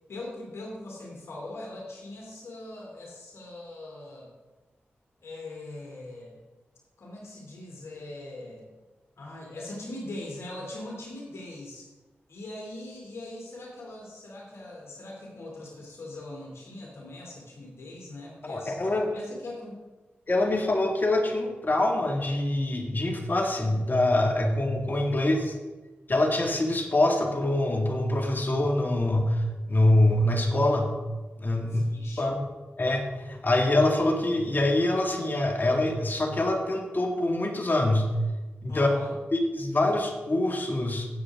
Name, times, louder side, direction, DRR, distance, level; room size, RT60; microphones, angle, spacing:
voice 1, 0.1-4.3 5.2-6.4 7.0-8.7 9.2-11.8 12.3-19.8 23.0-23.1 25.1-25.4 31.6-32.2 38.7-39.1, left 2 dB, 75° left, -2 dB, 2.9 m, -41 dB
voice 2, 18.4-19.1 20.3-25.5 26.1-29.4 29.7-30.9 31.4-31.8 32.2-32.4 32.8-38.1 38.6-38.9 39.3-41.1, left 1 dB, 45° left, 3 dB, 2.1 m, -25 dB
16.5 x 7.6 x 3.7 m, 1.2 s
cardioid pair, 40°, 5 cm